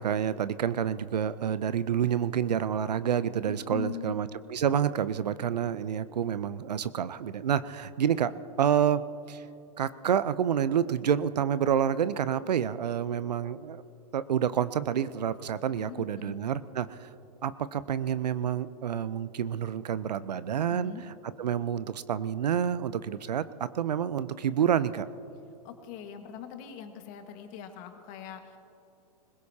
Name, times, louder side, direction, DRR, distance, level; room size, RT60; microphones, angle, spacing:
voice 1, 0.0-8.3 8.6-9.0 9.3-9.4 9.8-13.8 14.1-17.1 17.4-20.9 21.4-25.1, right 9 dB, 85° right, 15 dB, 0.6 m, -28 dB
voice 2, 3.5-4.2 15.8-16.3 20.7-21.0 25.6-28.6, left 9 dB, 40° left, 6 dB, 1.7 m, -42 dB
21.5 x 20.5 x 2.8 m, 2.7 s
hypercardioid pair, 125°, 20 cm